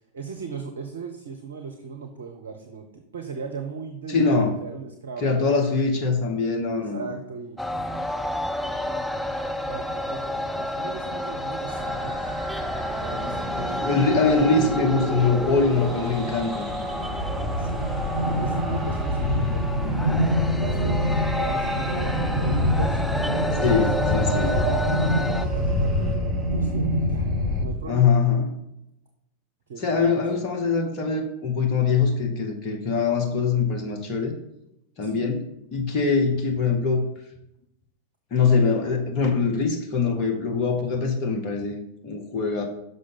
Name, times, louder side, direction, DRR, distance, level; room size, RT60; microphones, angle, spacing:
voice 1, 0.1-5.3 6.7-7.7 8.6-9.2 9.7-12.3 13.0-13.8 16.9-19.8 20.6-23.8 24.4-27.3 27.6-28.1 29.7-30.4 35.0-35.3, right 5 dB, 65° right, 4 dB, 0.8 m, -38 dB
voice 2, 4.1-4.6 5.2-7.1 13.8-16.7 23.6-24.6 27.9-28.5 29.8-34.3 35.0-35.4 35.7-37.0 38.3-41.8 42.0-42.6, left 4 dB, 35° left, 2 dB, 1.0 m, -23 dB
sound 1, 7.6-25.5, left 1 dB, 5° left, 0.6 m, -31 dB
sound 2, 11.7-27.6, right 2 dB, 15° right, 1.2 m, -32 dB
sound 3, 16.6-27.7, left 1 dB, 20° left, 2.9 m, -25 dB
6.4 x 5.5 x 5.7 m, 0.83 s
figure-of-eight pair, 90°, 0 cm